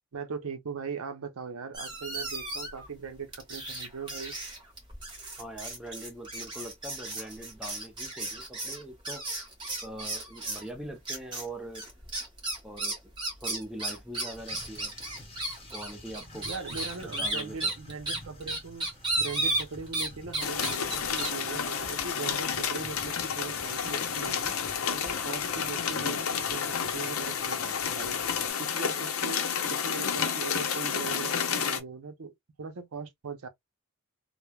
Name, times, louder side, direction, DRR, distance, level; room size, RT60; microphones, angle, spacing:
voice 1, 0.1-4.3 16.4-18.9 19.2-24.5 24.9-28.2 28.6-29.4 29.7-33.5, right 5 dB, 85° right, 0.6 m, -40 dB
sound 1, 1.7-2.9 3.3-10.7 11.1-11.5 11.7-20.1 20.3-21.3, right 2 dB, 20° right, 1.2 m, -34 dB
voice 2, 5.4-9.3 9.8-11.9 12.6-13.0 13.4-14.9 15.7-16.5 16.8-17.7, right 1 dB, 5° right, 0.4 m, -42 dB
sound 2, 14.4-28.5, equal, 25° left, 0.9 m, -50 dB
sound 3, 20.4-31.8, left 7 dB, 80° left, 0.6 m, -30 dB
3.2 x 2.1 x 2.2 m
head